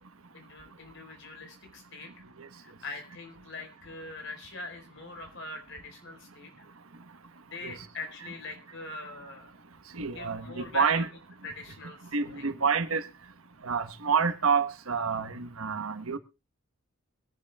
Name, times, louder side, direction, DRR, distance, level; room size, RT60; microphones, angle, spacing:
voice 1, 0.3-2.1 2.5-6.7 7.4-9.5 10.1-11.0 11.4-12.5, left 2 dB, 60° left, 4.4 m, -42 dB
voice 2, 9.9-11.1 12.1-13.1 13.6-16.2, right 5 dB, 85° right, 1.2 m, -28 dB
24.0 x 10.5 x 2.3 m
head